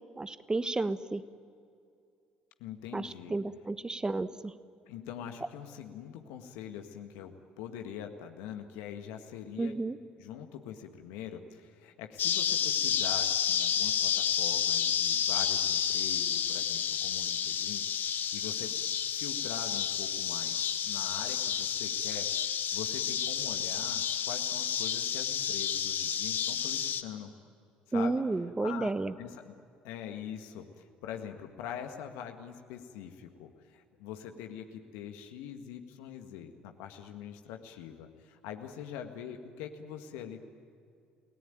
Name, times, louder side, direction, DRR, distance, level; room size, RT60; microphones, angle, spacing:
voice 1, 0.2-1.2 2.9-4.5 9.6-10.0 27.9-29.1, right 3 dB, 20° right, 14 dB, 1.2 m, -32 dB
voice 2, 2.6-3.4 4.9-9.7 10.2-18.7 19.1-22.3 22.7-27.3 27.9-28.2 28.6-29.5 29.8-40.4, left 9 dB, 65° left, 5 dB, 1.8 m, -43 dB
sound 1, 12.2-27.0, left 8 dB, 50° left, 1.6 m, -30 dB
29.5 x 18.5 x 9.3 m, 2.5 s
figure-of-eight pair, 55°, 4 cm